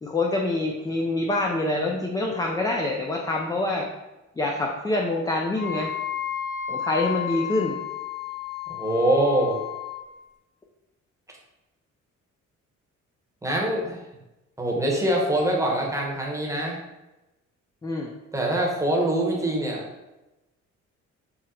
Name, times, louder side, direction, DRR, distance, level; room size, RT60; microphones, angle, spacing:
voice 1, 0.0-3.9 4.4-5.9 6.7-7.8 17.8-18.1, left 2 dB, 15° left, 0 dB, 0.4 m, -26 dB
Wind instrument woodwind instrument, 5.5-10.1, left 9 dB, 50° left, 0.8 m, -32 dB
voice 2, 8.7-9.6 13.4-14.0 14.6-16.8 18.3-19.8, right 1 dB, 10° right, -2 dB, 0.9 m, -24 dB
3.8 x 2.0 x 4.2 m, 1.0 s
cardioid pair, 90°, 30 cm